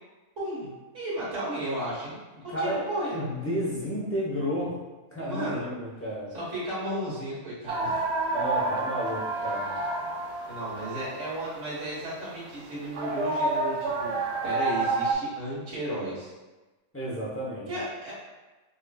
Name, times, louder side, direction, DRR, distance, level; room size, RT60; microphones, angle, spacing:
voice 1, 0.4-3.2 5.2-5.7 6.3-8.0 10.0-14.2 14.4-16.3 17.7-18.1, right 1 dB, 55° right, -8 dB, 1.6 m, -34 dB
voice 2, 3.1-4.7 5.1-6.3 8.3-9.6 16.9-17.7, equal, 15° left, -6 dB, 0.6 m, -31 dB
sound 1, 7.7-15.1, right 3 dB, 70° right, 0.6 m, -29 dB
5.0 x 2.6 x 2.3 m, 1.2 s
omnidirectional pair, 1.6 m